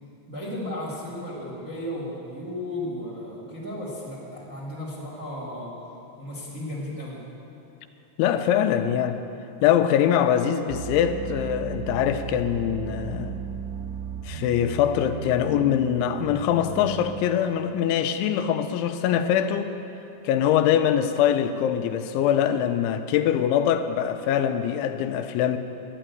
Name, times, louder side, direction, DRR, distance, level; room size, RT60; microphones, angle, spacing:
voice 1, 0.3-5.7 6.2-7.2, left 1 dB, 30° right, -5 dB, 1.6 m, -34 dB
voice 2, 8.2-9.2 9.6-13.4 14.2-19.7 20.2-25.6, left 9 dB, 85° left, 7 dB, 3.0 m, -23 dB
sound 1, 10.7-17.2, right 8 dB, 80° right, 2.8 m, -35 dB
12.5 x 10.0 x 9.1 m, 2.9 s
omnidirectional pair, 5.4 m